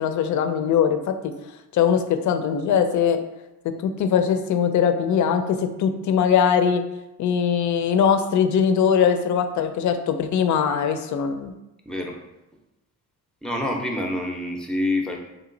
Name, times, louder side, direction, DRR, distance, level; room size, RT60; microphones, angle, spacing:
voice 1, 0.0-1.3 1.7-3.2 3.8-6.8 7.2-11.5, left 7 dB, 55° left, 9 dB, 0.5 m, -21 dB
voice 2, 11.9-12.2 13.4-15.2, left 1 dB, ahead, 1 dB, 0.5 m, -26 dB
3.7 x 2.9 x 3.8 m, 0.98 s
cardioid pair, 130°, 36 cm